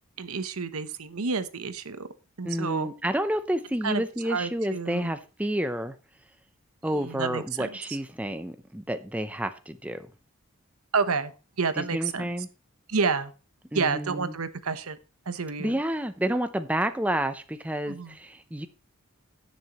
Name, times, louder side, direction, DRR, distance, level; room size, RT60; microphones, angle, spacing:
voice 1, 0.2-2.1 2.4-2.9 3.8-4.0 4.3-5.1 7.0-7.7 10.9-11.3 11.6-12.2 12.9-13.3 13.7-15.0 15.3-15.8 17.9-18.1, right 4 dB, 80° right, 0.9 m, -29 dB
voice 2, 2.4-5.9 6.8-10.1 11.7-12.5 13.7-14.4 15.6-18.7, right 1 dB, 5° right, 0.6 m, -30 dB
17.0 x 6.4 x 3.0 m
head